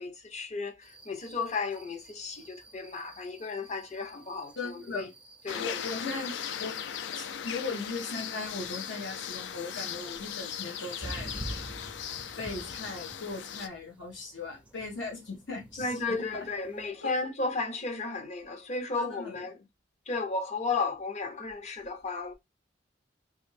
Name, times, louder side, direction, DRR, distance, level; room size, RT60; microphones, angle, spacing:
voice 1, 0.0-5.1 5.4-5.8 15.8-19.5 20.1-22.3, left 3 dB, 40° left, 0.6 m, -34 dB
sound 1, 0.8-16.9, right 1 dB, 10° right, 0.4 m, -49 dB
voice 2, 4.5-5.1 5.6-6.8 7.1-11.3 12.4-16.0 16.3-16.5 17.0-17.1 18.9-19.5, left 3 dB, 90° left, 1.5 m, -38 dB
sound 2, 5.5-13.7, left 9 dB, 75° left, 0.3 m, -38 dB
3.1 x 2.6 x 3.3 m
head